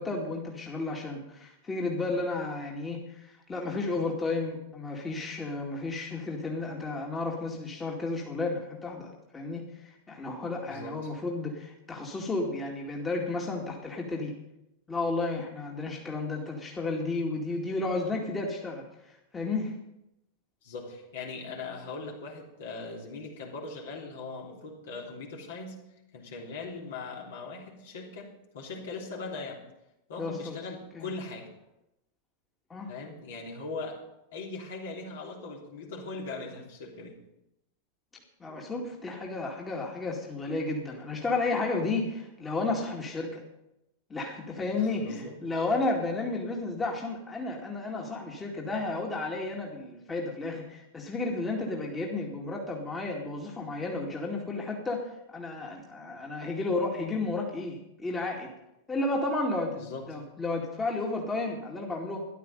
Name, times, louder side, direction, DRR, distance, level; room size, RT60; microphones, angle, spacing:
voice 1, 0.0-14.4 14.9-19.7 30.2-30.6 30.9-31.1 32.7-32.9 38.4-43.4 44.1-58.5 58.9-62.3, left 3 dB, 15° left, -1 dB, 2.3 m, -32 dB
voice 2, 10.7-11.1 20.6-25.8 26.1-29.6 30.1-31.5 32.9-34.0 34.3-37.2 44.8-45.4 59.8-60.1, left 3 dB, 60° left, -1 dB, 3.2 m, -40 dB
13.5 x 11.5 x 5.4 m, 0.85 s
figure-of-eight pair, 90°, 0 cm